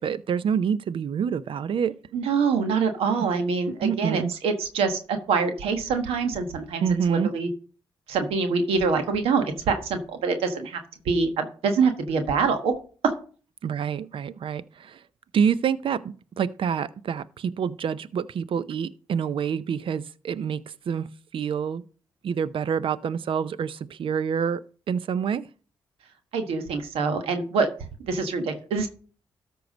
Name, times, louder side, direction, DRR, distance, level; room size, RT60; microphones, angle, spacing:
voice 1, 0.0-1.9 3.8-4.3 6.8-7.3 13.6-15.0 15.3-20.6 20.9-21.8 22.2-24.6 24.9-25.5, right 7 dB, 65° right, 0.6 m, -27 dB
voice 2, 2.1-5.0 5.3-7.5 8.1-10.8 11.0-12.7 13.0-13.1 26.3-27.7 28.0-28.9, right 5 dB, 85° right, 1.3 m, -25 dB
13.0 x 4.7 x 5.2 m
supercardioid pair, 50°, 10 cm